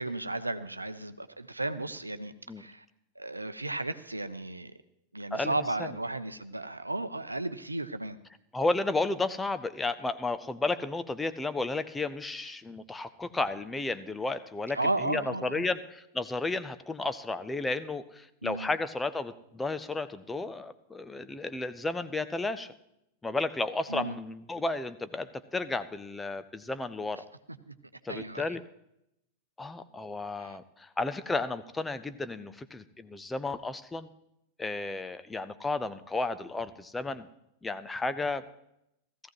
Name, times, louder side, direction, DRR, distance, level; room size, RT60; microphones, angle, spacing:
voice 1, 0.0-2.9 3.2-4.7 5.1-8.2 14.7-15.7 18.4-18.7 23.9-24.2 27.7-27.8 28.1-28.6 30.4-30.6, right 2 dB, 85° right, 11 dB, 0.6 m, -34 dB
voice 2, 8.5-22.7 23.2-27.2 28.0-28.6 29.6-34.1 34.6-37.3 37.6-38.4, left 3 dB, 10° left, 11 dB, 0.7 m, -33 dB
17.0 x 14.5 x 3.0 m, 0.80 s
figure-of-eight pair, 90°, 0 cm